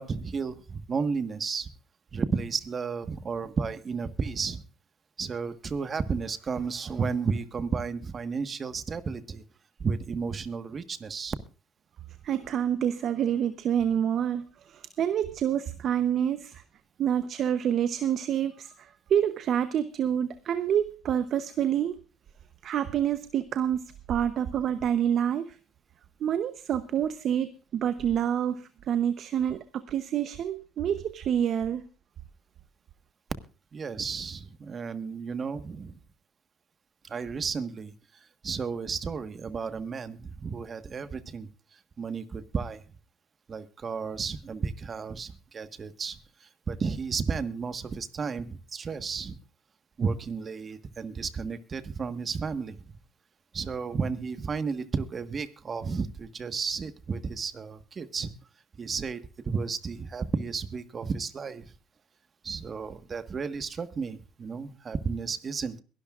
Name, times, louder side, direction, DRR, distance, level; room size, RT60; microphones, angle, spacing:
voice 1, 0.0-1.7 2.1-4.6 5.2-9.4 9.8-11.3 33.7-36.0 37.0-37.9 38.4-41.5 42.0-42.8 43.5-49.4 50.0-52.8 53.5-58.3 58.7-61.7 62.4-65.8, right 5 dB, 35° right, 11 dB, 1.5 m, -33 dB
voice 2, 12.2-16.6 17.0-22.0 22.6-25.6 26.2-31.8, right 9 dB, 55° right, 12 dB, 0.9 m, -27 dB
22.5 x 12.0 x 2.5 m, 0.36 s
supercardioid pair, 95°, 0 cm